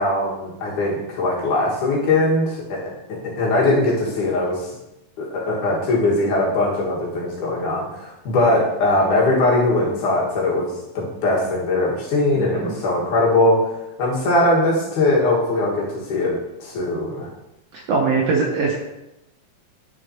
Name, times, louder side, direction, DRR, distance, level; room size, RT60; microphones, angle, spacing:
voice 1, 0.0-2.8 3.1-4.7 5.2-10.7 10.9-13.6 14.0-16.4 16.6-17.3, left 2 dB, 70° left, -4 dB, 3.1 m, -20 dB
voice 2, 12.4-12.7 17.7-18.8, right 4 dB, 70° right, 0 dB, 1.6 m, -22 dB
10.5 x 6.5 x 2.8 m, 0.92 s
omnidirectional pair, 3.7 m